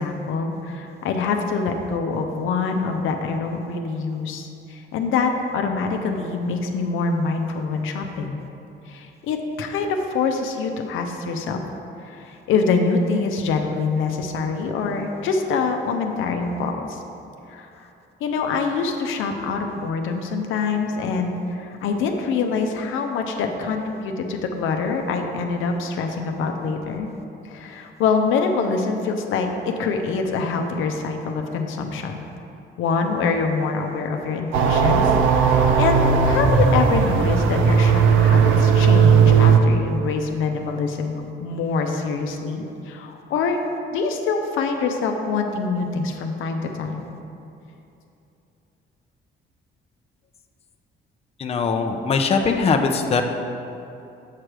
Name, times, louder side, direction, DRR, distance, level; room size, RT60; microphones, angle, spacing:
voice 1, 0.0-8.4 8.9-11.6 12.0-17.0 17.5-17.7 18.2-27.1 27.5-32.2 32.8-35.0 35.5-41.1 41.4-43.6 43.9-47.0, left 4 dB, 85° left, 4 dB, 0.6 m, -25 dB
sound 1, 34.5-39.6, right 6 dB, 80° right, 0.6 m, -16 dB
voice 2, 51.4-53.2, left 4 dB, 30° left, 4 dB, 0.5 m, -21 dB
7.5 x 3.3 x 6.1 m, 2.8 s
cardioid pair, 90°, 20 cm